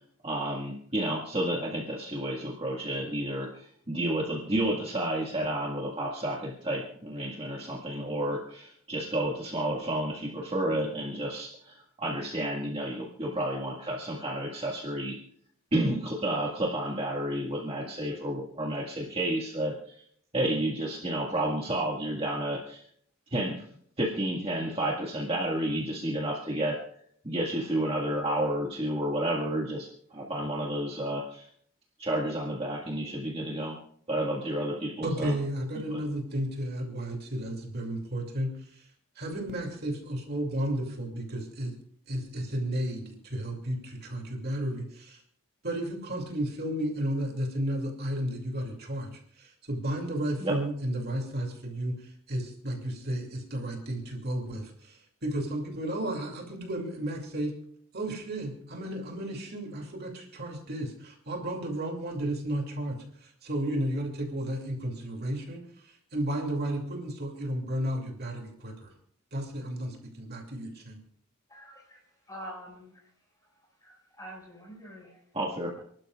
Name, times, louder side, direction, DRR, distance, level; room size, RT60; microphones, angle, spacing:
voice 1, 0.2-15.2 15.7-20.0 20.3-22.9 23.3-23.6 24.0-26.8 27.2-31.5 32.0-33.8 34.1-35.4 35.9-36.0 50.4-50.5 75.3-75.8, right 1 dB, 25° right, -2 dB, 1.8 m, -31 dB
voice 2, 35.0-38.8 39.2-41.7 42.1-45.2 45.6-57.5 57.9-68.9 69.3-71.0, right 1 dB, 50° right, 1 dB, 2.6 m, -33 dB
voice 3, 71.5-73.1 73.4-75.2, equal, 15° left, -1 dB, 5.7 m, -46 dB
29.0 x 12.0 x 2.4 m, 0.64 s
head